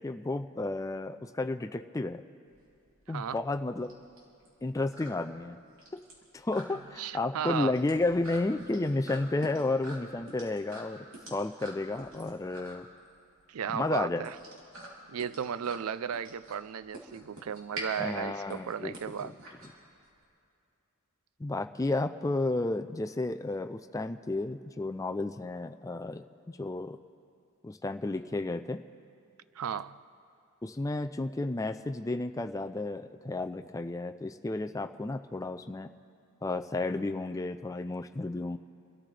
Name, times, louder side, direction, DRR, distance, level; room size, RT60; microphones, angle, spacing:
voice 1, 0.0-2.2 3.1-3.9 4.6-5.6 5.9-6.0 6.3-11.1 11.3-12.9 13.7-14.3 18.0-18.9 19.2-19.3 21.4-27.0 27.6-28.8 30.6-35.9 36.4-38.6, left 2 dB, 15° left, 0.4 m, -32 dB
sound 1, 2.5-20.2, right 1 dB, 65° right, 3.4 m, -47 dB
voice 2, 3.1-3.4 7.0-7.8 13.5-14.4 15.1-19.3 29.6-30.0, right 8 dB, 80° right, 0.4 m, -35 dB
27.0 x 13.5 x 3.3 m
head